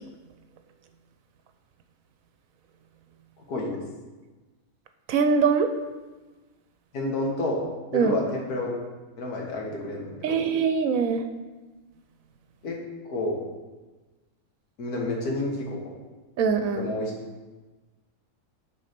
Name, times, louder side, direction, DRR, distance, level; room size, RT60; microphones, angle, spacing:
voice 1, 3.5-3.8 6.9-8.8 9.2-10.4 12.6-12.8 13.1-13.4 14.8-15.9 16.7-17.1, left 2 dB, 80° left, -1 dB, 1.9 m, -29 dB
voice 2, 5.1-5.7 7.9-8.1 10.2-11.2 16.4-16.9, right 5 dB, 70° right, 7 dB, 1.0 m, -22 dB
8.2 x 4.0 x 5.9 m, 1.2 s
omnidirectional pair, 1.6 m